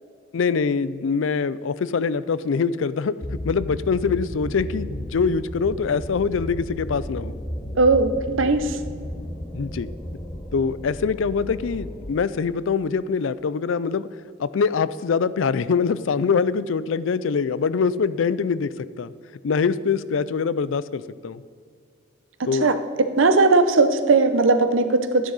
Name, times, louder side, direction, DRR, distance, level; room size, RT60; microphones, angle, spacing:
voice 1, 0.3-3.1 3.4-7.3 9.5-9.9 10.5-14.1 14.4-18.7 19.0-19.1 19.4-21.4 22.5-22.7, left 5 dB, 75° left, 17 dB, 0.4 m, -24 dB
sound 1, 3.2-12.1, equal, 20° left, 0.9 m, -34 dB
voice 2, 7.8-8.8 22.4-25.3, right 3 dB, 85° right, 10 dB, 0.8 m, -19 dB
12.5 x 10.0 x 4.1 m, 2.1 s
head